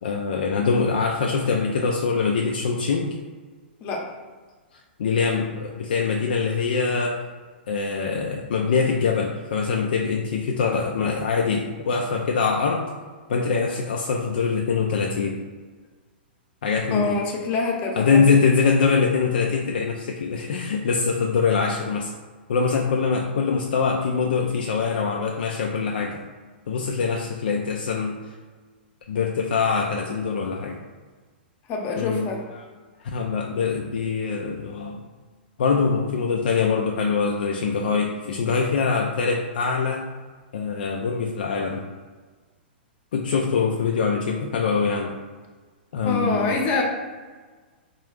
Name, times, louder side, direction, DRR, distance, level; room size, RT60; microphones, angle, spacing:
voice 1, 0.0-3.2 4.7-7.2 7.7-12.9 13.3-15.4 16.6-17.2 18.0-22.1 22.5-26.2 26.7-28.2 29.1-30.8 32.0-32.3 33.0-35.0 35.6-40.1 40.5-41.9 43.1-45.1 45.9-46.7, left 5 dB, 60° left, 1 dB, 0.3 m, -23 dB
voice 2, 16.9-18.3 31.7-32.4 46.0-46.8, left 4 dB, 30° left, -1 dB, 0.7 m, -26 dB
3.7 x 2.3 x 3.2 m, 1.4 s
figure-of-eight pair, 105°, 6 cm